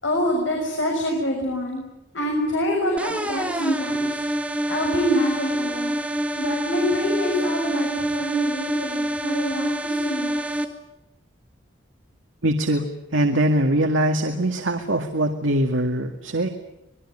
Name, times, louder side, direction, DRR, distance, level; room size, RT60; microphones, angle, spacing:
voice 1, 0.0-1.8 2.1-4.2 4.6-6.0 6.4-10.6, equal, 75° left, 0 dB, 6.6 m, -26 dB
sound 1, 3.0-10.6, right 1 dB, 5° right, 1.9 m, -26 dB
voice 2, 12.4-12.9 13.1-16.5, right 1 dB, 90° right, 5 dB, 2.1 m, -22 dB
26.0 x 21.0 x 9.9 m, 0.88 s
head